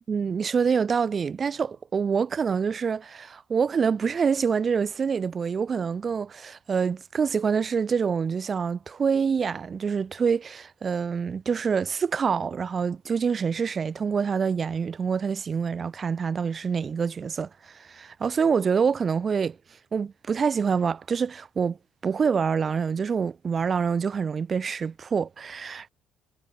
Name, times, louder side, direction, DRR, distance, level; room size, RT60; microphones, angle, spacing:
voice 1, 0.1-19.6 19.9-21.8 22.0-25.9, right 6 dB, 35° right, 7.7 m, -26 dB
cardioid pair, 110°, 0 cm